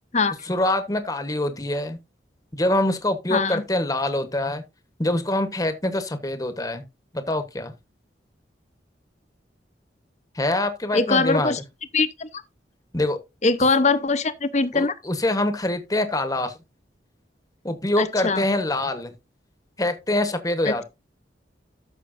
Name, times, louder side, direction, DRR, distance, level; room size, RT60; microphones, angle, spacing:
voice 1, 0.5-2.0 2.5-4.6 5.0-6.8 7.1-7.7 10.3-11.6 12.9-13.2 14.7-16.5 17.6-19.1 19.8-20.8, left 1 dB, 20° left, 1.2 m, -24 dB
voice 2, 3.3-3.6 10.9-11.6 11.9-12.3 13.4-14.9 18.0-18.5 20.6-20.8, left 3 dB, 40° left, 0.9 m, -22 dB
14.0 x 6.6 x 2.6 m
head